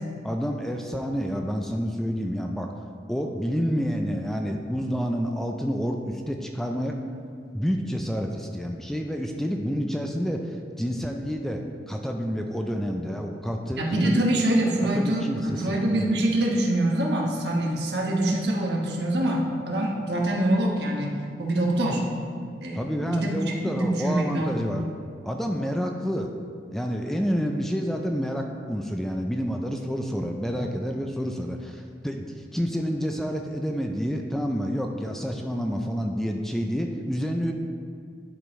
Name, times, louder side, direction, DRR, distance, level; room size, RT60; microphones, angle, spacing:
voice 1, 0.2-2.7 3.1-7.0 7.5-14.2 14.9-16.1 22.7-24.9 25.2-26.3 26.7-37.5, equal, ahead, 2 dB, 0.4 m, -29 dB
voice 2, 13.8-22.0 22.6-23.3 23.6-24.6 30.5-30.7, right 1 dB, 70° right, -1 dB, 1.1 m, -25 dB
11.0 x 5.0 x 3.1 m, 2.2 s
head